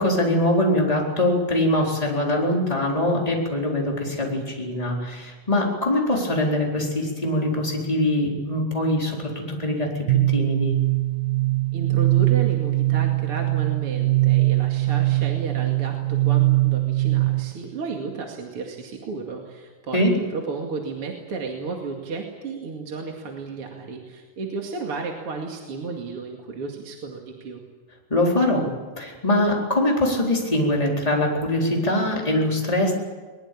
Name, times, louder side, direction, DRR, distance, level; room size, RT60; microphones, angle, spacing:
voice 1, 0.0-10.7 19.9-20.1 28.1-28.7 29.0-32.9, left 1 dB, 10° left, -1 dB, 4.1 m, -23 dB
sound 1, 10.1-17.6, right 19 dB, 75° right, 2.2 m, -21 dB
voice 2, 11.7-27.6, right 4 dB, 45° right, 1 dB, 2.9 m, -33 dB
22.0 x 21.0 x 8.6 m, 1.4 s
omnidirectional pair, 3.6 m